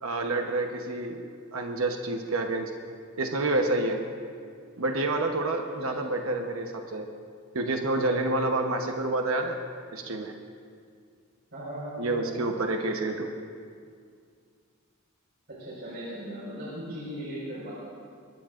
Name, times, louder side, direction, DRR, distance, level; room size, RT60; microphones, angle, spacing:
voice 1, 0.0-1.2 1.5-2.7 3.2-4.0 4.8-7.1 7.5-9.6 9.9-10.3 12.0-13.3, right 2 dB, 70° right, 3 dB, 1.1 m, -28 dB
voice 2, 5.6-6.3 11.5-12.4 15.5-17.7, equal, 55° right, -8 dB, 4.8 m, -38 dB
22.5 x 21.5 x 2.5 m, 2.2 s
head